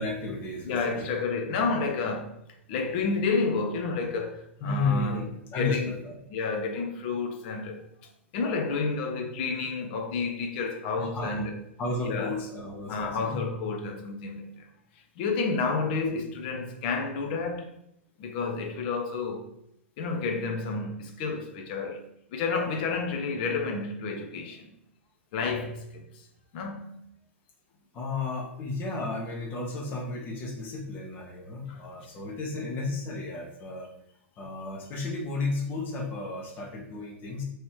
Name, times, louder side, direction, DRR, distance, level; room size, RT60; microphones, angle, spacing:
voice 1, 0.0-1.1 4.6-5.2 5.5-6.1 10.9-11.5 11.8-13.4 27.9-33.9 34.4-37.4, left 3 dB, 30° left, 1.0 m, -33 dB
voice 2, 0.7-2.3 2.7-5.9 6.3-7.8 8.3-11.6 12.0-12.3 12.9-14.7 15.2-17.7 18.2-19.5 20.0-24.7 25.3-26.3 26.5-27.0 31.7-31.8, left 4 dB, 45° left, 0.6 m, -30 dB
3.1 x 3.0 x 4.6 m
figure-of-eight pair, 95°, 7 cm